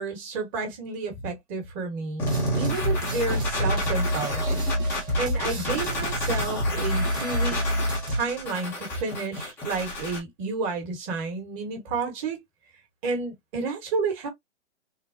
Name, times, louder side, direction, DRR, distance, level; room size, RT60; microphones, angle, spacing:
voice 1, 0.0-2.3 2.6-4.5 5.2-7.6 8.1-12.4 13.0-14.3, right 4 dB, 30° right, 1.3 m, -31 dB
sound 1, 2.2-10.2, left 1 dB, 5° left, 0.4 m, -31 dB
sound 2, 2.2-8.2, equal, 10° right, 0.9 m, -28 dB
3.8 x 2.0 x 2.6 m
hypercardioid pair, 140°, 36 cm